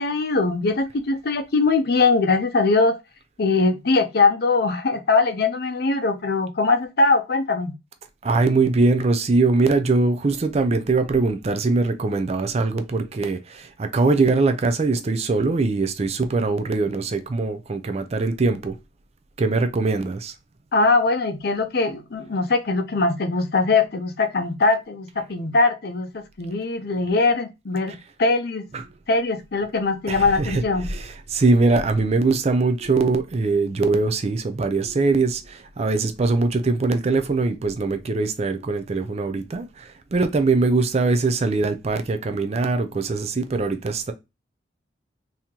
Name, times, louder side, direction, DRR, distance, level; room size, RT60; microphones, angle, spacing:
voice 1, 0.0-3.0 3.4-7.7 20.7-27.9 28.2-28.6 29.1-30.8, left 3 dB, 55° left, 0.5 m, -21 dB
voice 2, 8.2-18.8 19.4-20.3 28.7-28.8 30.1-31.0 31.3-44.1, right 3 dB, 35° right, 0.4 m, -22 dB
3.7 x 2.8 x 2.9 m
head